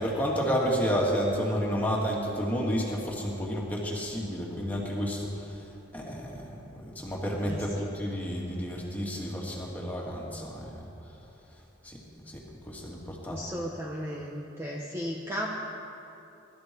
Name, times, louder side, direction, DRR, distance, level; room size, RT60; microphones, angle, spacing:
voice 1, 0.0-5.5 5.9-10.8 11.8-13.4, equal, 10° left, -3 dB, 2.5 m, -31 dB
voice 2, 7.5-7.9 13.3-15.5, equal, 15° right, -2 dB, 1.0 m, -35 dB
23.0 x 13.0 x 4.7 m, 2.8 s
head